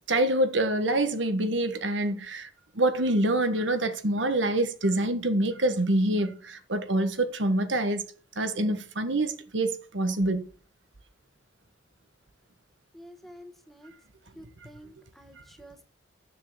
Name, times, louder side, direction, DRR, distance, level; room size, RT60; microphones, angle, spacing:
voice 1, 0.1-2.5 2.7-8.0 8.4-10.4, right 1 dB, 85° right, 1.5 m, -26 dB
voice 2, 12.9-13.9 14.3-15.8, equal, ahead, 1.3 m, -49 dB
10.0 x 7.3 x 7.1 m
head